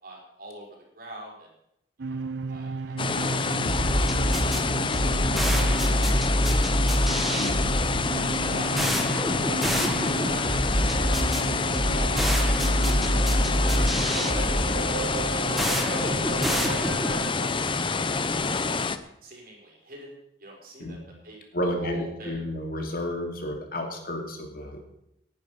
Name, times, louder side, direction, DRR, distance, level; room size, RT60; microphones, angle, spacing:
voice 1, 0.0-0.7 0.9-1.5 2.1-4.6 5.3-6.6 7.2-7.4 8.1-8.8 9.4-11.2 11.9-17.8 18.4-18.6 19.2-22.4, right 1 dB, 50° right, -2 dB, 5.9 m, -44 dB
sound 1, 2.0-17.3, right 4 dB, 75° right, 0.6 m, -34 dB
sound 2, 3.0-19.0, left 4 dB, 30° left, 0.8 m, -27 dB
sound 3, 3.7-17.3, equal, ahead, 1.6 m, -26 dB
voice 2, 21.5-24.8, left 1 dB, 50° left, 3 dB, 2.7 m, -31 dB
19.0 x 10.5 x 5.3 m, 0.80 s
head